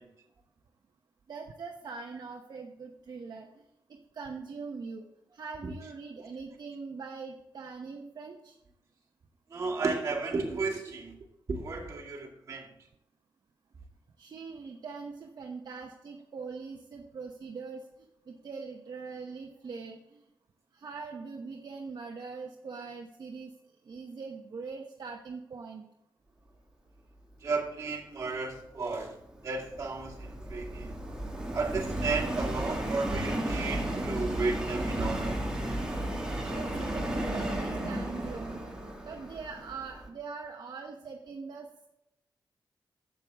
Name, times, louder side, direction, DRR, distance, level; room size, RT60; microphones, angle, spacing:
voice 1, 1.3-3.5 3.9-5.1 5.3-8.6 14.2-17.8 18.3-20.2 20.7-23.5 23.8-25.9 36.5-38.6 39.0-41.7, right 4 dB, 55° right, 1 dB, 1.0 m, -42 dB
voice 2, 9.5-11.1 11.5-12.7 27.4-29.1 29.4-30.9 31.5-35.4, right 3 dB, 40° right, -3 dB, 2.2 m, -33 dB
Subway metro underground, 28.8-40.1, right 1 dB, 10° right, 1.6 m, -34 dB
12.0 x 7.7 x 3.5 m, 0.86 s
wide cardioid pair, 165°, 8 cm